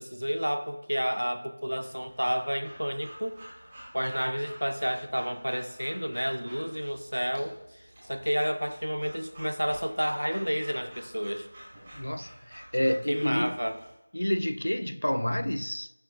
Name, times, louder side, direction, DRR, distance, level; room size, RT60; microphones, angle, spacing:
voice 1, 0.0-3.4 3.9-11.5 12.9-13.8, equal, 90° right, 0.6 m, -30 dB
Breathing / Dog, 1.8-13.9, equal, 15° right, 2.2 m, -50 dB
voice 2, 11.9-13.6 14.1-15.9, equal, 75° left, 0.3 m, -29 dB
11.0 x 5.7 x 2.4 m
figure-of-eight pair, 170°, 0 cm